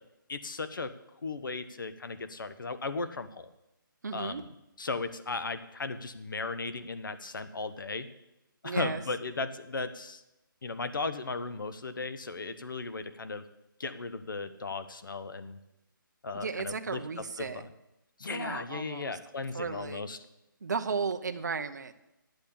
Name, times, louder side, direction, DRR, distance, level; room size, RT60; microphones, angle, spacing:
voice 1, 0.3-0.9 1.2-3.5 4.1-4.5 4.8-8.1 8.6-10.2 10.6-13.4 13.8-15.6 16.2-17.0 17.4-17.7 18.2-20.2, left 3 dB, 65° left, 11 dB, 1.0 m, -36 dB
voice 2, 4.0-4.4 8.6-9.0 16.3-17.6 18.2-19.2 19.5-20.0 20.6-21.9, right 5 dB, 55° right, 7 dB, 0.7 m, -35 dB
10.5 x 8.0 x 7.0 m, 0.90 s
hypercardioid pair, 175°, 12 cm